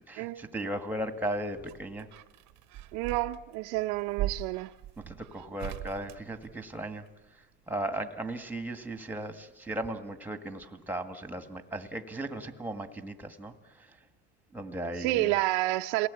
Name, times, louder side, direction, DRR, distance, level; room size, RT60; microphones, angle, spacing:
voice 1, 0.0-2.1 5.0-7.0 7.7-14.0 14.5-15.3, right 1 dB, 5° right, 1.7 m, -36 dB
sound 1, 1.1-7.1 8.6-9.4 9.7-9.8, right 12 dB, 50° right, 1.0 m, -41 dB
voice 2, 2.9-4.7 15.0-16.1, right 17 dB, 80° right, 0.8 m, -29 dB
28.0 x 18.5 x 8.3 m
cardioid pair, 135°, 38 cm